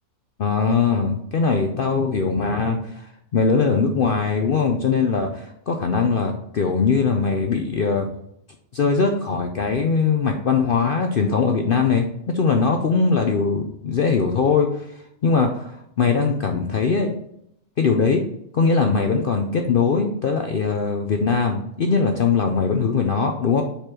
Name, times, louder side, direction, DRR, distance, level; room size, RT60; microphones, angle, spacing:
voice 1, 0.4-8.1 8.7-12.1 12.3-17.2 17.8-18.2 18.5-23.6, left 5 dB, 55° left, 4 dB, 0.6 m, -21 dB
5.1 x 4.4 x 6.0 m, 0.75 s
omnidirectional pair, 1.5 m